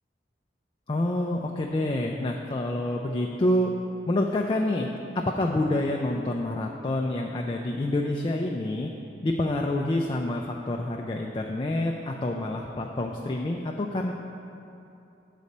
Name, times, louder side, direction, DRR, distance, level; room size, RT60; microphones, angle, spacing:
voice 1, 0.9-3.7 4.1-4.9 5.2-8.9 9.2-14.1, left 1 dB, 30° left, 1 dB, 0.3 m, -27 dB
8.3 x 4.1 x 6.6 m, 2.8 s
head